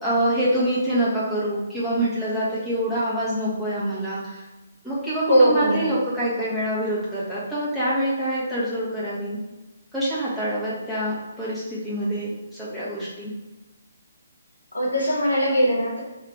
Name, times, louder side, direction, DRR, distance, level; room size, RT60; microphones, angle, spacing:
voice 1, 0.0-4.4 4.8-9.4 9.9-13.3, right 1 dB, ahead, -11 dB, 1.4 m, -26 dB
voice 2, 5.3-6.0 14.7-16.0, equal, 80° left, -4 dB, 1.3 m, -20 dB
3.1 x 2.9 x 4.6 m, 1.1 s
figure-of-eight pair, 135°, 0 cm